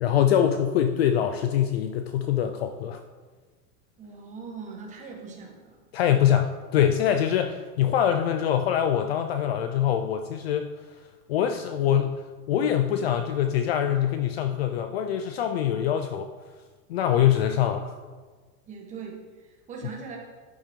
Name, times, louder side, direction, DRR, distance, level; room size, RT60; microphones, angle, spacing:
voice 1, 0.0-3.0 5.9-10.7 11.3-12.2 12.5-16.3 16.9-18.0, left 9 dB, 45° left, 7 dB, 0.5 m, -24 dB
voice 2, 4.0-5.8 18.7-20.2, right 5 dB, 15° right, -1 dB, 1.4 m, -40 dB
11.5 x 9.4 x 3.7 m, 1.4 s
supercardioid pair, 175°, 46 cm